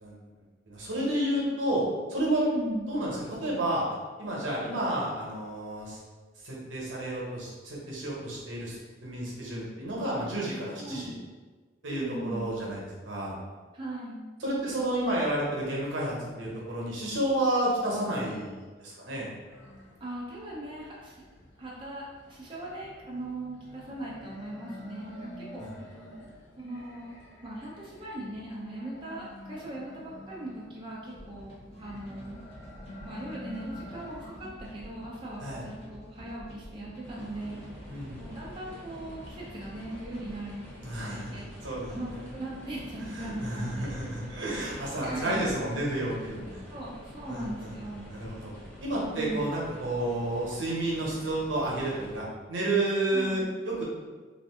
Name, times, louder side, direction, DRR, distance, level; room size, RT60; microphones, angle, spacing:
voice 1, 0.7-2.4 2.9-3.8 4.2-6.0 6.4-11.1 11.8-13.4 14.4-18.5 18.8-19.3 25.6-25.7 35.4-35.6 37.9-38.2 40.8-42.2 43.1-46.6 47.3-47.7 48.1-48.5 48.8-53.8, right 1 dB, 75° right, -4 dB, 0.9 m, -31 dB
voice 2, 2.4-2.9 10.8-11.2 11.8-12.5 13.7-14.2 20.0-21.2 21.6-25.9 26.6-27.1 27.4-31.5 31.8-32.4 33.0-37.6 38.1-40.6 41.1-41.5 41.9-43.9 45.0-45.5 46.7-48.2 49.1-49.5 53.1-53.4, right 1 dB, 25° right, -6 dB, 0.5 m, -39 dB
sound 1, 19.5-34.3, left 1 dB, 70° left, 0.8 m, -48 dB
sound 2, 31.0-45.6, equal, 35° left, 1.0 m, -48 dB
sound 3, 37.0-52.2, equal, 10° left, 0.7 m, -47 dB
2.5 x 2.5 x 3.5 m, 1.4 s
head